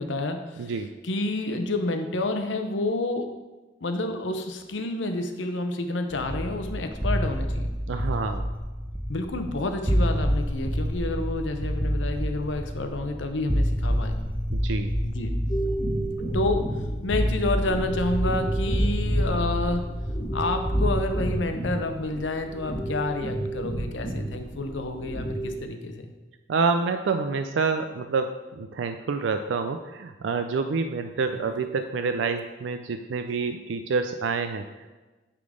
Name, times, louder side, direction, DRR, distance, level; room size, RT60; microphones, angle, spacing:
voice 1, 0.0-0.7 1.0-3.3 3.8-7.7 9.1-14.2 15.0-15.3 16.3-16.7 17.0-19.8 20.3-26.1 31.3-31.4, left 2 dB, 85° left, 6 dB, 0.8 m, -29 dB
voice 2, 0.6-0.9 7.9-8.5 14.5-14.9 26.5-34.9, right 4 dB, 85° right, 8 dB, 0.4 m, -28 dB
sound 1, 6.1-21.3, equal, 10° right, 0.8 m, -28 dB
sound 2, 15.5-25.6, right 1 dB, 40° left, 1.9 m, -32 dB
9.7 x 3.8 x 5.0 m, 1.2 s
head